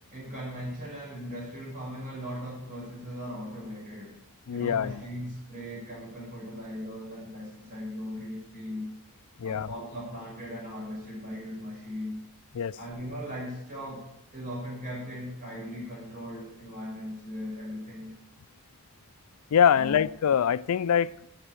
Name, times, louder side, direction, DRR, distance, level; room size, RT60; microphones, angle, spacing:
voice 1, 0.1-4.2 4.5-8.9 9.4-12.2 12.7-14.0 14.3-18.1 19.7-19.9, equal, 35° right, -6 dB, 6.0 m, -38 dB
voice 2, 4.5-5.0 9.4-9.7 12.5-12.8 19.5-21.1, left 8 dB, 85° left, 17 dB, 0.4 m, -24 dB
13.5 x 6.8 x 9.1 m, 0.82 s
head